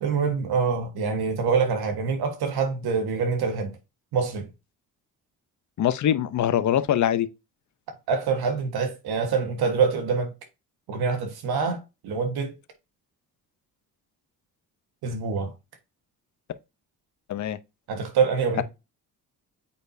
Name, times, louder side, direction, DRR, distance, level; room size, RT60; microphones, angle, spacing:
voice 1, 0.0-3.8 4.1-4.5 7.9-10.3 10.9-12.5 15.0-15.5 17.9-18.6, right 5 dB, 75° right, 1.6 m, -25 dB
voice 2, 5.8-7.3 17.3-17.6, left 10 dB, 50° left, 0.7 m, -23 dB
8.3 x 4.3 x 2.7 m
supercardioid pair, 70°, 38 cm